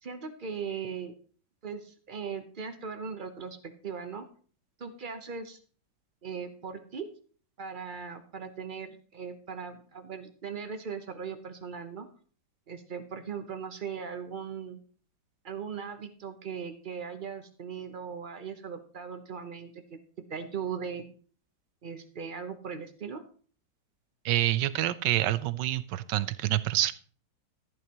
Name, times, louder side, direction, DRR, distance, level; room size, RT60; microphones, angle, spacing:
voice 1, 0.0-1.1 1.6-4.3 4.8-5.6 6.2-7.1 7.6-12.1 12.7-14.8 15.4-20.0 20.3-21.1 21.8-23.2, right 6 dB, 40° right, 7 dB, 0.7 m, -39 dB
voice 2, 24.2-26.9, right 14 dB, 75° right, 15 dB, 1.2 m, -27 dB
14.5 x 9.2 x 3.0 m, 0.43 s
omnidirectional pair, 2.0 m